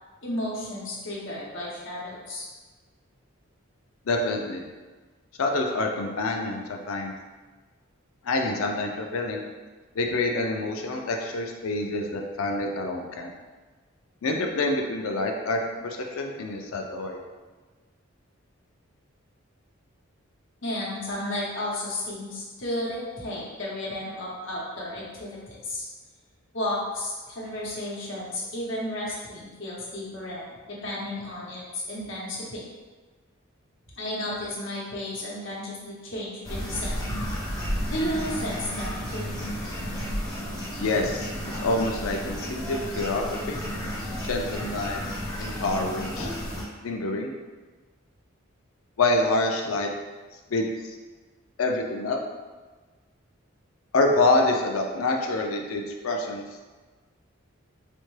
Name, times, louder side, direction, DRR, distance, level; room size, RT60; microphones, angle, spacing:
voice 1, 0.2-2.4 20.6-25.8 26.5-32.6 34.0-36.9 37.9-39.3, left 1 dB, 65° left, -5 dB, 1.0 m, -33 dB
voice 2, 4.1-4.6 5.4-7.1 8.2-9.4 9.9-13.3 14.2-17.2 40.8-43.6 44.2-45.0 45.4-46.3 46.8-47.3 49.0-49.9 50.5-50.7 51.6-52.2 53.9-56.4, left 2 dB, 80° left, 2 dB, 0.5 m, -26 dB
sound 1, 36.4-46.6, equal, 20° left, 0.8 m, -32 dB
4.2 x 2.2 x 3.1 m, 1.3 s
head